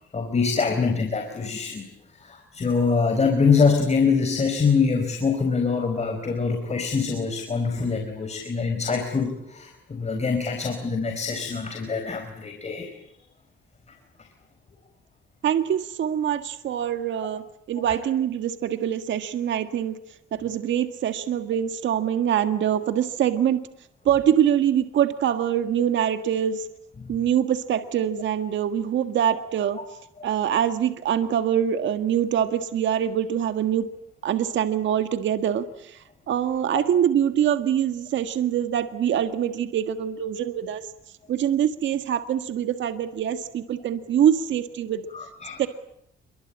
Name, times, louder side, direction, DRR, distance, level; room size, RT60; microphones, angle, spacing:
voice 1, 0.1-12.9 27.0-27.2 45.1-45.6, left 5 dB, 35° left, 5 dB, 4.5 m, -24 dB
voice 2, 15.4-20.0 20.3-23.6 24.0-26.7 27.1-29.8 30.2-33.9 34.2-40.9 41.3-45.1 45.6-45.7, right 9 dB, 70° right, 9 dB, 1.7 m, -24 dB
28.0 x 24.0 x 8.8 m, 0.74 s
cardioid pair, 90°, 20 cm